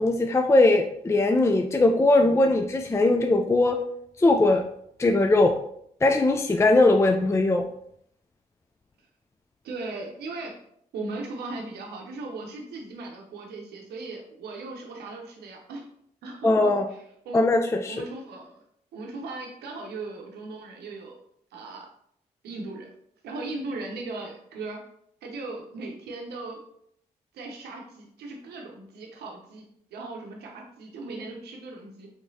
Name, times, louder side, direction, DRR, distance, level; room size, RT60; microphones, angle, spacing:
voice 1, 0.0-3.8 4.2-4.6 5.0-5.5 6.0-7.6 16.4-16.9 17.3-18.0, left 2 dB, 15° left, 4 dB, 0.4 m, -20 dB
voice 2, 9.6-10.6 10.9-15.8 16.2-17.6 17.9-18.6 18.9-21.2 21.5-21.9 22.4-22.9 23.2-24.8 25.2-26.6 27.3-29.6 29.9-32.1, right 3 dB, 80° right, 1 dB, 0.7 m, -38 dB
3.6 x 3.0 x 2.7 m, 0.70 s
supercardioid pair, 45°, 16 cm